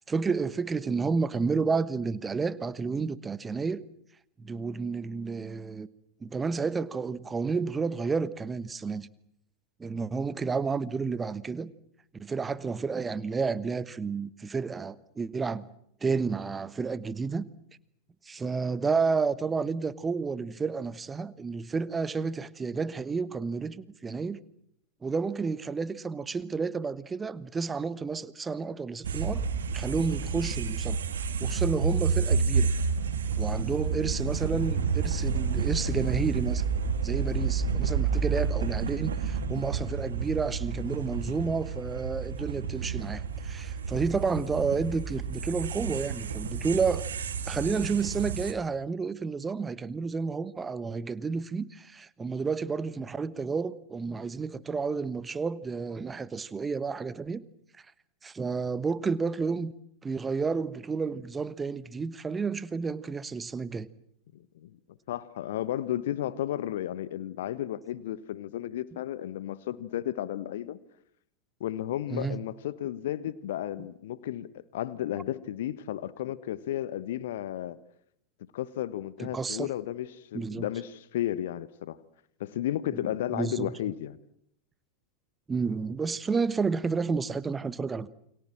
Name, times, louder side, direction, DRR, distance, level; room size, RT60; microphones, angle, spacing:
voice 1, 0.0-3.8 4.4-5.9 6.2-9.1 9.8-11.7 12.2-15.7 16.0-17.4 18.2-24.4 25.0-29.4 29.7-31.0 31.4-32.7 33.4-36.6 37.0-47.1 47.4-57.4 58.2-59.7 60.0-63.9 72.1-72.4 79.2-79.7 80.3-80.7 83.3-83.7 85.5-88.1, right 4 dB, 15° right, 1.2 m, -31 dB
sound 1, 29.0-48.5, right 5 dB, 65° right, 2.5 m, -30 dB
voice 2, 64.3-64.7 65.1-70.8 71.6-77.8 78.5-82.0 82.4-84.2, left 12 dB, 55° left, 1.1 m, -33 dB
29.5 x 24.0 x 7.5 m
figure-of-eight pair, 90°, 0 cm